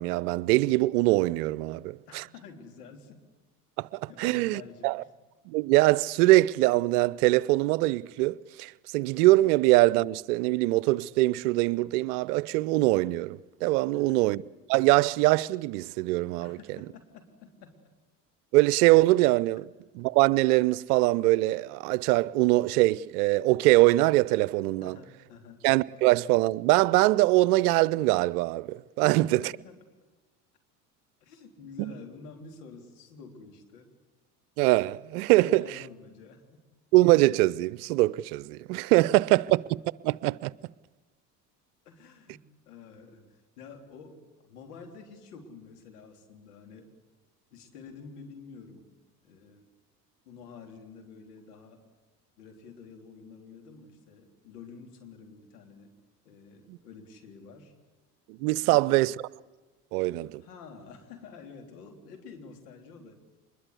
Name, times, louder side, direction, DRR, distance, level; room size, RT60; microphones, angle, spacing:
voice 1, 0.0-2.2 3.8-5.0 5.5-14.4 14.7-16.6 18.5-19.7 19.9-25.0 25.6-29.5 31.8-31.9 34.6-35.7 36.9-39.6 40.0-40.5 56.7-56.8 58.3-59.1 59.9-60.4, right 19 dB, 70° right, 0.7 m, -23 dB
voice 2, 2.1-3.2 4.1-5.1 13.9-14.2 16.4-17.8 24.8-25.6 29.0-29.8 31.2-33.9 35.4-36.6 39.4-39.5 41.8-46.9 47.5-48.8 49.2-49.7 50.3-51.9 52.4-55.9 56.3-57.7 58.6-59.0 60.4-63.1, left 5 dB, 75° left, 3.7 m, -49 dB
25.0 x 22.0 x 8.3 m
hypercardioid pair, 65°, 47 cm